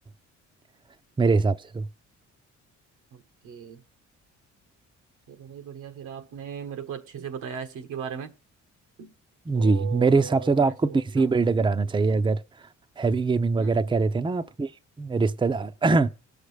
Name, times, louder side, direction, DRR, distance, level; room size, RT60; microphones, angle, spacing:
voice 1, 1.2-1.9 9.5-12.4 13.0-14.7 15.0-16.1, right 4 dB, 15° right, 0.6 m, -23 dB
voice 2, 3.1-3.8 5.3-8.4 9.0-9.1 9.5-11.4 13.6-14.0, right 7 dB, 80° right, 1.4 m, -38 dB
17.5 x 6.6 x 3.3 m
cardioid pair, 90°, 30 cm